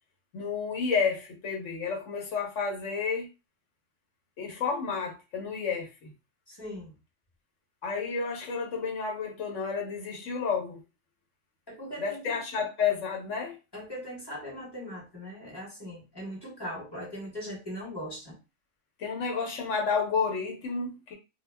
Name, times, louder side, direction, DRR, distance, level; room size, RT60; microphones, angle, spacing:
voice 1, 0.3-3.3 4.4-6.1 7.8-10.8 12.0-13.6 19.0-21.1, left 5 dB, 80° left, 1.1 m, -31 dB
voice 2, 6.5-6.9 11.7-12.4 13.7-18.4, equal, 20° left, 0.9 m, -40 dB
2.3 x 2.1 x 3.2 m
omnidirectional pair, 1.3 m